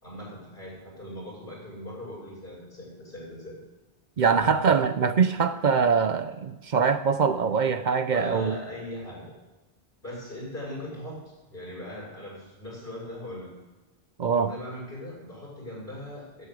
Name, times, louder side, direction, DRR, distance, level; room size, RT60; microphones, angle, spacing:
voice 1, 0.0-3.6 4.5-4.6 8.1-9.3 10.0-13.5 14.4-16.5, left 1 dB, 55° left, -5 dB, 6.8 m, -39 dB
voice 2, 4.2-8.5 14.2-14.5, right 6 dB, 50° right, 12 dB, 0.7 m, -23 dB
9.9 x 9.6 x 9.1 m, 1.1 s
omnidirectional pair, 1.1 m